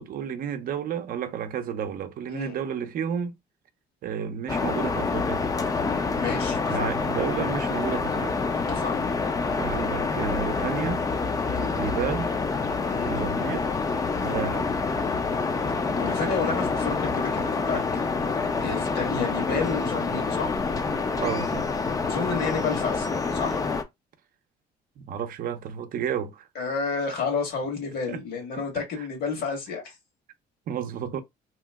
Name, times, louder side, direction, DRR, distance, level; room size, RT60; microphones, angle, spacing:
voice 1, 0.0-3.3 4.0-5.5 6.7-8.5 9.6-11.1 11.8-12.3 13.1-13.7 14.2-14.7 19.0-19.3 21.2-21.7 25.0-26.5 28.1-28.2 29.0-29.1 30.7-31.2, right 8 dB, 60° right, 0.6 m, -31 dB
sound 1, 4.5-23.8, left 4 dB, 20° left, 0.4 m, -27 dB
voice 2, 6.2-6.9 8.7-9.0 11.5-11.7 12.9-13.1 14.2-14.4 16.0-18.0 18.6-20.6 22.0-23.6 26.5-29.9, left 5 dB, 65° left, 1.5 m, -31 dB
2.9 x 2.1 x 3.4 m
cardioid pair, 110°, 17 cm